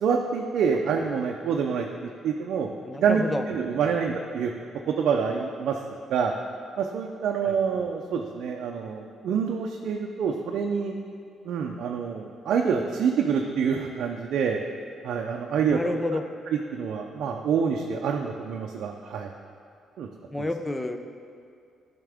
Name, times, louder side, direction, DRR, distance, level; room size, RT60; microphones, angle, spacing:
voice 1, 0.0-2.7 3.0-4.5 4.9-5.8 6.1-6.3 6.8-10.9 11.5-14.6 15.0-16.0 16.7-19.3 20.0-20.1 20.4-20.5, right 6 dB, 75° right, 1 dB, 0.5 m, -27 dB
voice 2, 2.8-3.4 3.8-4.0 7.4-7.6 15.5-16.2 20.3-21.0, left 1 dB, 10° left, 7 dB, 0.5 m, -30 dB
11.0 x 5.7 x 3.5 m, 2.4 s
cardioid pair, 90°, 0 cm